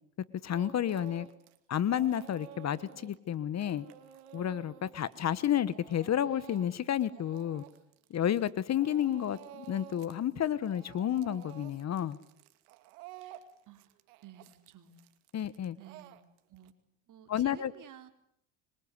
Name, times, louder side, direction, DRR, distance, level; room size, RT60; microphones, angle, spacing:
voice 1, 0.4-1.3 1.7-3.8 4.3-7.6 8.1-12.2 15.3-15.8 17.3-17.7, left 10 dB, 40° left, 18 dB, 1.3 m, -31 dB
Speech / Crying sobbing, 0.5-1.6 1.9-8.5 8.8-10.2 10.5-16.7, right 12 dB, 80° right, 2.6 m, -52 dB
voice 2, 13.2-13.9 14.2-14.9 15.8-16.2 16.5-16.7 17.1-18.1, right 10 dB, 45° right, 8 dB, 3.7 m, -54 dB
26.0 x 23.5 x 9.6 m, 0.73 s
supercardioid pair, 95°, 43 cm